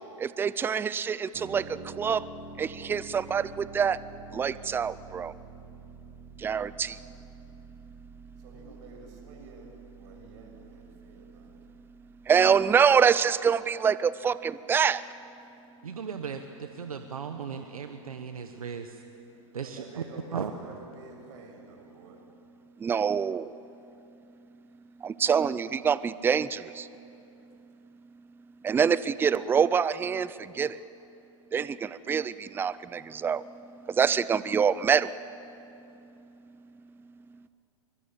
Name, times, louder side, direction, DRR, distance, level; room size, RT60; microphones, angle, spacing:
voice 1, 0.2-2.3 2.6-4.0 4.3-5.3 6.4-7.0 12.2-15.0 22.8-23.5 25.0-26.9 28.6-30.8 31.5-35.1, right 7 dB, 10° right, 18 dB, 0.5 m, -26 dB
sound 1, 1.3-13.0, right 4 dB, 30° right, 3.3 m, -48 dB
voice 2, 8.4-11.6 19.5-22.2, right 4 dB, 55° right, 2 dB, 6.9 m, -50 dB
voice 3, 15.8-19.0 19.5-20.0 20.3-20.5, right 6 dB, 85° right, 7 dB, 1.3 m, -36 dB
24.0 x 22.0 x 8.7 m, 2.8 s
hypercardioid pair, 115°, 18 cm